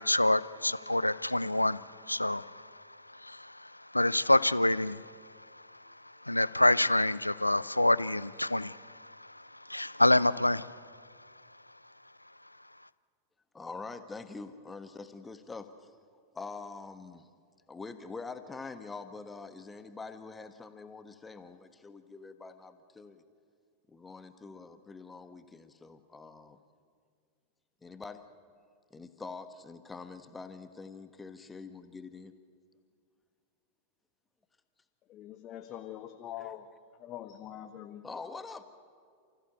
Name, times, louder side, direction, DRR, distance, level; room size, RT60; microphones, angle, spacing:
voice 1, 0.0-2.6 3.2-5.0 6.3-9.1 9.7-10.8, left 1 dB, 85° left, 0.5 m, -27 dB
voice 2, 13.5-15.9 16.3-17.3 17.7-23.2 23.9-26.6 27.8-28.2 28.9-32.3 38.0-38.6, left 4 dB, 10° left, 1.4 m, -45 dB
voice 3, 35.1-36.7 36.9-38.1, left 11 dB, 35° left, 1.2 m, -43 dB
30.0 x 15.5 x 8.2 m
figure-of-eight pair, 90°, 0 cm